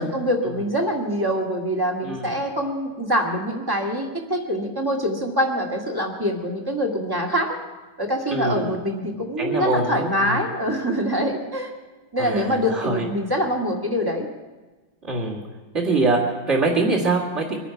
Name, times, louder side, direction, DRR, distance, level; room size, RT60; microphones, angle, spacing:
voice 1, 0.0-7.6 8.0-11.7 12.1-14.3, equal, 10° right, 1 dB, 1.7 m, -24 dB
voice 2, 2.0-2.3 8.3-8.8 9.4-10.4 12.2-13.1 15.0-15.4 15.7-17.5, right 3 dB, 35° right, -2 dB, 2.5 m, -24 dB
23.0 x 10.0 x 5.9 m, 1.2 s
omnidirectional pair, 2.2 m